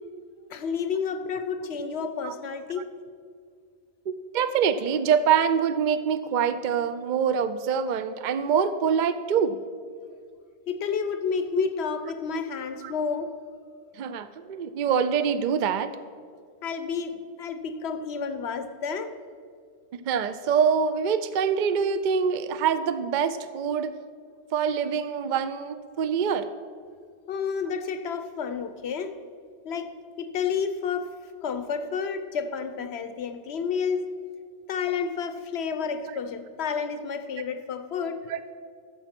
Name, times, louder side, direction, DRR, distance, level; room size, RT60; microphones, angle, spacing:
voice 1, 0.5-2.9 10.7-13.3 16.6-19.2 27.3-29.2 29.6-29.9 30.2-31.1 31.4-34.1 34.7-38.2, left 6 dB, 75° left, 10 dB, 1.0 m, -30 dB
voice 2, 4.1-9.6 11.6-11.7 12.8-12.9 14.0-15.9 20.1-23.9 24.5-26.5 38.3-38.4, right 7 dB, 55° right, 12 dB, 0.6 m, -25 dB
13.0 x 7.1 x 5.9 m, 2.2 s
omnidirectional pair, 1.1 m